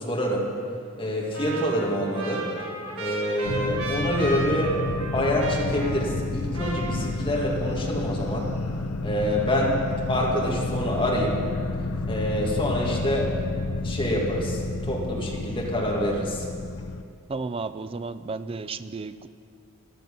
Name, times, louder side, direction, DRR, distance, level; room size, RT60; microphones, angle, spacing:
voice 1, 0.1-0.5 1.0-2.5 3.0-4.8 5.1-8.5 9.0-9.8 10.1-11.4 12.1-13.3 13.8-14.6 14.9-16.4, equal, 25° left, -3 dB, 2.2 m, -26 dB
Trumpet, 1.3-6.3 6.5-7.6, right 2 dB, 65° right, 1.6 m, -35 dB
sound 1, 3.4-17.0, left 3 dB, 80° left, 0.5 m, -30 dB
voice 2, 17.3-19.3, right 4 dB, 25° right, 12 dB, 0.4 m, -33 dB
13.5 x 11.0 x 5.4 m, 2.3 s
head